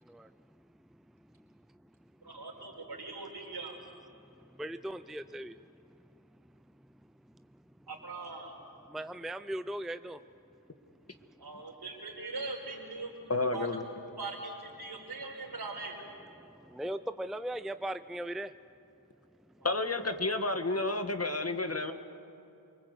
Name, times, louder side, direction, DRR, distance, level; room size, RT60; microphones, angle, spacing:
voice 1, 2.2-3.8 7.9-8.6 11.4-13.1 13.5-13.7 14.2-16.0, right 3 dB, 70° right, 1 dB, 4.9 m, -41 dB
voice 2, 4.6-5.5 8.9-10.2 16.7-18.5, right 1 dB, ahead, 12 dB, 0.6 m, -37 dB
voice 3, 13.3-13.8 19.6-21.9, left 2 dB, 40° left, 8 dB, 1.6 m, -30 dB
28.0 x 20.0 x 8.2 m, 2.7 s
cardioid pair, 45°, 39 cm